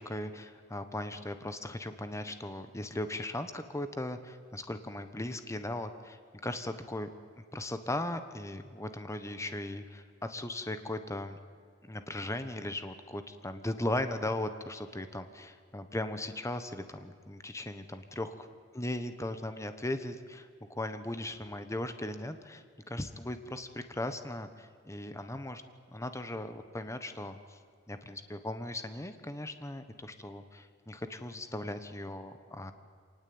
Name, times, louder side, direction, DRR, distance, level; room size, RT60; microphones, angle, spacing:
voice 1, 0.0-7.1 7.5-11.4 11.8-18.5 18.7-25.6 25.9-27.6 27.9-32.7, left 1 dB, 15° left, 9 dB, 1.2 m, -38 dB
26.5 x 18.5 x 8.8 m, 2.2 s
head